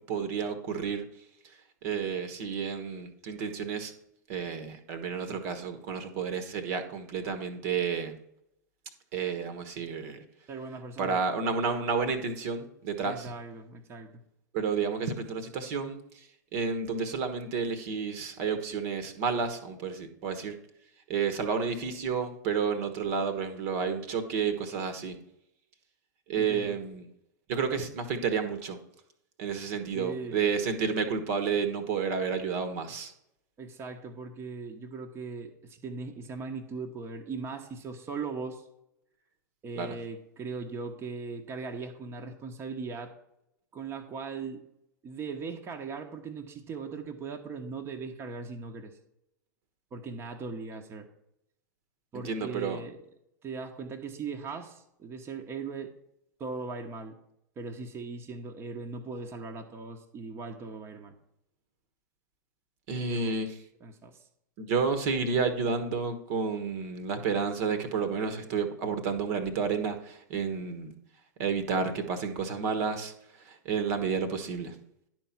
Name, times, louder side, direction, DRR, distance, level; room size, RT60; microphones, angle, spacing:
voice 1, 0.1-1.0 1.8-3.9 4.3-8.2 9.1-10.2 11.0-13.3 14.5-16.3 16.5-20.5 21.1-25.2 26.3-27.1 27.5-28.8 29.4-33.1 39.7-39.9 52.1-52.8 62.9-63.6 64.6-70.9 71.4-74.7, right 5 dB, 50° right, 9 dB, 1.2 m, -31 dB
voice 2, 10.5-11.2 13.1-14.1 26.3-26.8 29.9-30.4 33.6-38.6 39.6-43.1 43.7-44.6 45.0-48.9 49.9-51.1 52.1-53.0 53.4-55.9 56.4-57.1 57.6-61.1 63.1-63.4 63.8-64.2, right 4 dB, 25° right, 3 dB, 1.0 m, -39 dB
10.5 x 4.6 x 5.8 m, 0.78 s
figure-of-eight pair, 95°, 10 cm